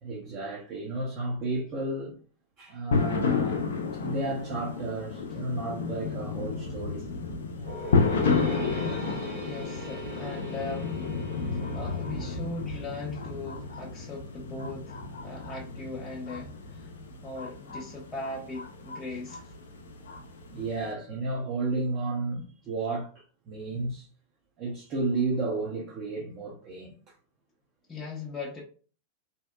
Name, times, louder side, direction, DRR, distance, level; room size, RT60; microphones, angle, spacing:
voice 1, 0.0-2.2 2.6-3.7 3.9-7.1 7.6-7.7 11.5-11.7 20.5-23.1 23.5-24.1 24.6-26.9, right 2 dB, 40° right, 0.6 m, -32 dB
sound 1, 2.9-20.9, left 4 dB, 70° left, 0.5 m, -32 dB
sound 2, 7.6-12.9, equal, 70° right, 0.9 m, -39 dB
voice 2, 9.4-11.0 11.7-15.0 15.2-16.9 17.2-19.5 27.9-28.6, left 3 dB, 20° left, 0.6 m, -39 dB
2.7 x 2.0 x 2.3 m
figure-of-eight pair, 95°, 0 cm